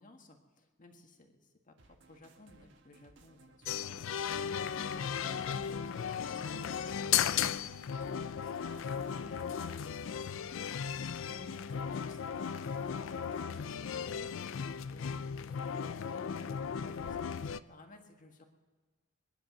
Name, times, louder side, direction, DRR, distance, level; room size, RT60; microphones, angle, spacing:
voice 1, 0.0-7.2 8.6-14.5 14.9-18.5, left 2 dB, 45° left, 3 dB, 1.8 m, -57 dB
sound 1, 1.8-14.7, right 2 dB, 65° right, 1.4 m, -62 dB
sound 2, 3.6-17.6, left 8 dB, 90° left, 0.4 m, -36 dB
22.5 x 10.5 x 5.9 m, 1.4 s
head